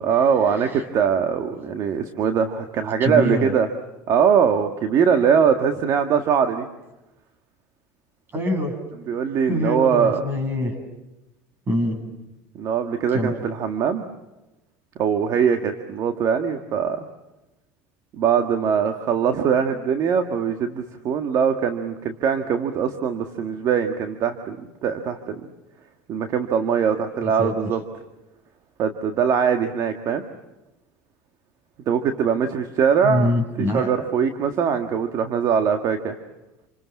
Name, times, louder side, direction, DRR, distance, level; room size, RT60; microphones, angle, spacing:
voice 1, 0.0-3.7 4.1-6.7 9.1-10.2 12.6-14.1 15.0-17.1 18.2-25.4 26.1-27.8 28.8-30.2 31.9-33.3 33.7-36.2, right 7 dB, 50° right, 6 dB, 1.9 m, -22 dB
voice 2, 3.0-3.5 8.3-8.7 9.5-10.7 11.7-12.0 13.1-13.3 27.2-27.5 33.0-33.9, left 1 dB, 25° right, 6 dB, 7.5 m, -24 dB
28.5 x 27.5 x 7.3 m, 0.99 s
cardioid pair, 130°, 8 cm